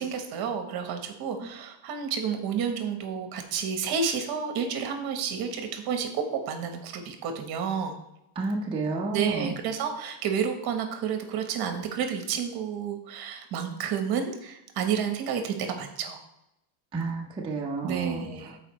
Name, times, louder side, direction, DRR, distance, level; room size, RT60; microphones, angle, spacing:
voice 1, 0.0-7.9 9.1-16.2 17.8-18.6, right 7 dB, 45° right, 6 dB, 1.1 m, -30 dB
voice 2, 8.4-9.5 16.9-18.3, right 3 dB, 10° right, -3 dB, 0.7 m, -30 dB
12.5 x 4.6 x 3.1 m, 0.84 s
cardioid pair, 165°, 50 cm